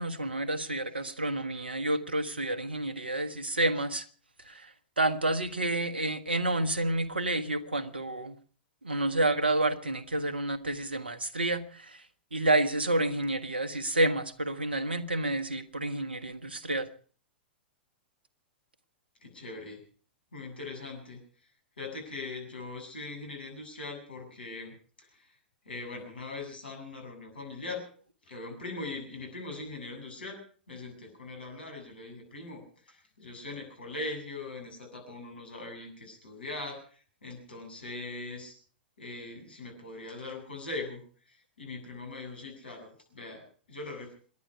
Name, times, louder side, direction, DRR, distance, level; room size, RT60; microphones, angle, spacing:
voice 1, 0.0-4.1 4.5-8.3 8.8-12.0 12.3-16.9, right 2 dB, 85° right, 10 dB, 1.6 m, -29 dB
voice 2, 19.2-19.8 20.3-21.2 21.8-24.7 25.1-25.4 25.7-27.8 28.3-30.4 30.7-38.6 39.0-41.0 41.3-44.1, left 3 dB, 75° left, 4 dB, 7.6 m, -41 dB
27.5 x 11.0 x 4.7 m, 0.43 s
figure-of-eight pair, 105°, 5 cm